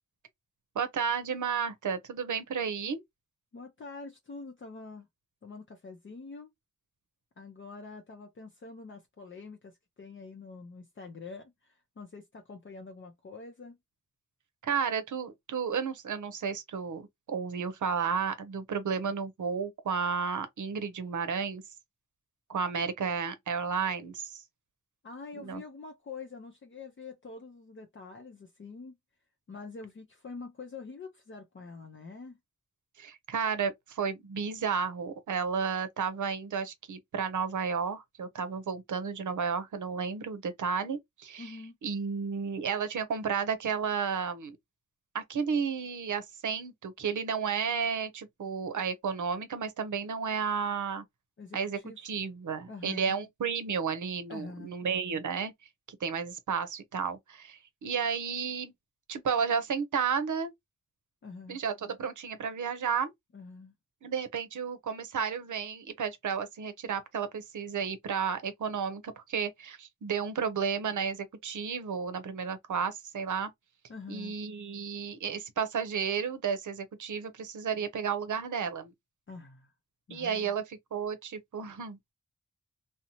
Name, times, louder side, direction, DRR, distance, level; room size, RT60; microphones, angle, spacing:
voice 1, 0.7-3.0 14.6-21.6 22.5-24.4 25.4-25.6 33.0-41.5 41.8-44.6 45.1-51.0 51.5-55.5 55.9-58.7 59.1-60.5 61.5-63.1 64.0-73.5 74.1-78.9 80.1-82.0, right 6 dB, 85° right, 0.6 m, -32 dB
voice 2, 3.5-5.1 5.4-6.5 7.4-13.8 25.0-29.0 29.5-32.4 41.4-41.8 51.4-52.0 52.7-53.2 54.3-54.8 61.2-61.6 63.3-63.7 73.9-74.4 79.3-79.7 80.1-80.5, left 4 dB, 40° left, 0.5 m, -45 dB
2.7 x 2.0 x 2.8 m
wide cardioid pair, 80°, 30 cm